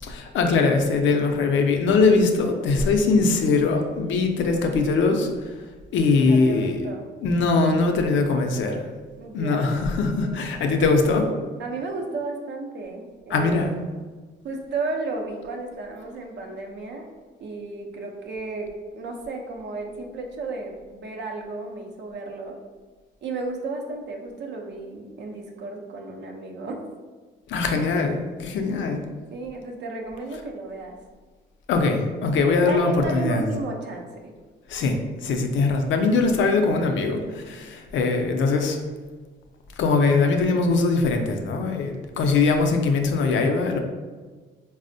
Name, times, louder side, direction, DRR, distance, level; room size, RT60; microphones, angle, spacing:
voice 1, 0.0-5.5 5.9-6.9 7.2-8.8 9.3-11.3 13.3-13.7 27.5-29.0 31.7-33.5 34.7-38.8 39.8-43.8, left 3 dB, 75° left, 4 dB, 0.5 m, -21 dB
voice 2, 6.2-7.0 9.2-9.7 10.2-10.8 11.6-13.7 14.4-17.1 17.4-22.6 23.2-26.8 29.3-31.0 32.5-34.3, right 3 dB, 65° right, 2 dB, 0.6 m, -33 dB
4.1 x 2.0 x 2.6 m, 1.4 s
cardioid pair, 90°, 20 cm